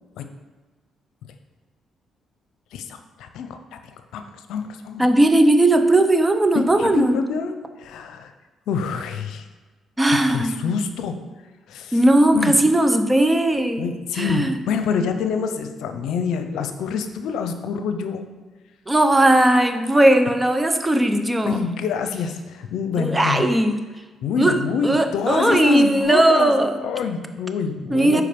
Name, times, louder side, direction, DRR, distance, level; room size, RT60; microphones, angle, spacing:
voice 1, 2.7-3.6 4.1-4.2 4.5-5.1 6.5-8.3 8.7-9.4 10.1-11.1 11.7-12.0 12.3-12.5 13.8-18.2 21.4-23.4 24.2-26.5 26.8-28.2, left 6 dB, 85° left, 8 dB, 0.6 m, -26 dB
voice 2, 5.0-7.2 10.0-10.7 11.9-13.8 14.1-14.6 18.9-21.6 23.0-23.8 24.4-26.8 27.9-28.2, right 1 dB, 15° right, 7 dB, 0.8 m, -18 dB
8.4 x 4.9 x 5.2 m, 1.3 s
cardioid pair, 90°, 0 cm